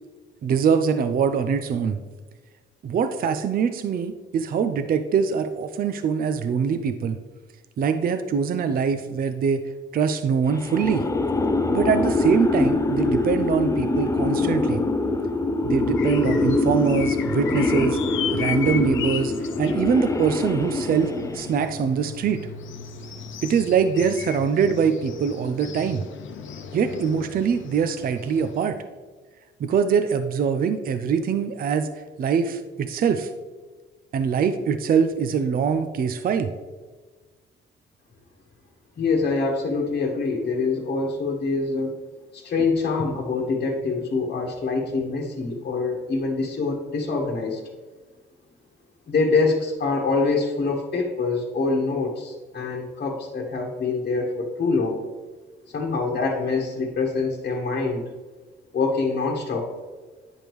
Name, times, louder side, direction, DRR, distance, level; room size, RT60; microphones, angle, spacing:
voice 1, 0.4-2.0 2.8-7.2 7.8-11.0 11.7-14.8 15.6-22.5 23.4-26.0 26.7-28.8 29.6-33.3 34.1-36.5, right 6 dB, 45° right, 9 dB, 0.5 m, -23 dB
sound 1, 10.5-21.7, left 2 dB, 15° left, 0.5 m, -24 dB
sound 2, 16.0-28.7, left 7 dB, 75° left, 0.8 m, -36 dB
voice 2, 39.0-41.9 42.3-47.6 49.1-55.0 55.7-58.0 58.7-59.7, left 4 dB, 50° left, -1 dB, 1.2 m, -25 dB
9.9 x 5.1 x 3.1 m, 1.4 s
cardioid pair, 90°, 20 cm